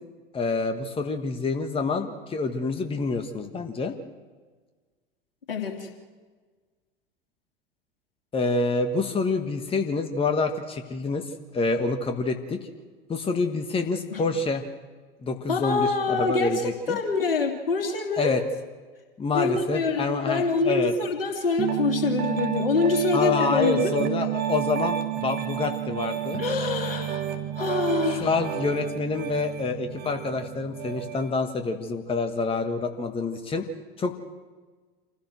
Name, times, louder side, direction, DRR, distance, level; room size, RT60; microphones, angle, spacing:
voice 1, 0.3-3.9 8.3-11.3 11.5-12.6 13.1-14.6 15.2-17.0 18.2-18.4 19.2-20.9 23.1-26.4 28.2-33.7 34.0-34.2, left 3 dB, 20° left, 6 dB, 1.6 m, -27 dB
voice 2, 5.5-5.9 14.1-14.2 15.5-18.4 19.3-24.0 26.4-27.2 27.5-28.3, left 4 dB, 70° left, 3 dB, 3.0 m, -25 dB
Piano, 21.6-31.3, right 11 dB, 35° right, 2.1 m, -30 dB
27.0 x 16.0 x 6.2 m, 1.4 s
figure-of-eight pair, 85°, 29 cm